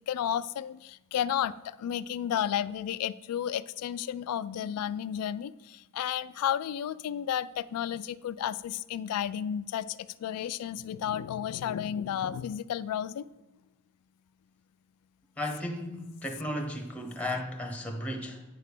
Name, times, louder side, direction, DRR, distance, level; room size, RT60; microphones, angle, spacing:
voice 1, 0.0-13.2, left 9 dB, 85° left, 17 dB, 0.3 m, -32 dB
voice 2, 15.4-18.4, left 1 dB, 5° left, 3 dB, 0.9 m, -35 dB
9.0 x 3.3 x 6.7 m, 1.0 s
head